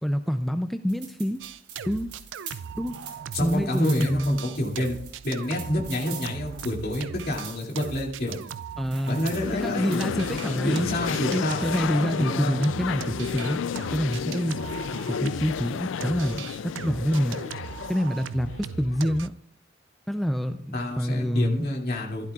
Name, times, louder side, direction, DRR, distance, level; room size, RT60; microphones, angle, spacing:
voice 1, 0.0-1.4 1.9-2.1 2.8-3.0 3.4-4.4 8.8-9.2 9.5-10.9 11.3-13.6 13.9-14.6 14.9-16.5 16.8-17.4 17.9-19.3 20.1-21.7, equal, ahead, 8 dB, 0.3 m, -26 dB
sound 1, 0.9-10.2, right 7 dB, 60° right, 4.1 m, -44 dB
sound 2, 1.4-3.7 4.0-15.7 16.0-19.3, right 7 dB, 85° right, 0.4 m, -39 dB
voice 2, 3.3-4.9 5.2-8.4 9.0-11.7 12.2-12.6 20.7-22.3, left 1 dB, 55° left, -1 dB, 2.5 m, -28 dB
sound 3, 9.1-19.1, left 7 dB, 90° left, 0.4 m, -32 dB
15.5 x 13.0 x 2.4 m, 0.64 s
head